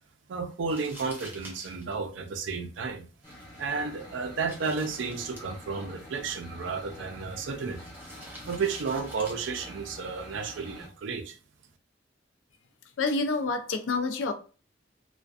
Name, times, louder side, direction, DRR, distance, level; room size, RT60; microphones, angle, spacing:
voice 1, 0.3-3.1 3.6-7.9 8.5-11.4, right 4 dB, 75° right, 0.4 m, -32 dB
Crumpling crinkling, 0.6-10.8, right 1 dB, 10° right, 0.6 m, -51 dB
sound 1, 3.2-10.9, equal, 15° left, 0.9 m, -47 dB
voice 2, 13.0-14.3, left 3 dB, 85° left, 0.4 m, -28 dB
2.4 x 2.1 x 2.3 m
head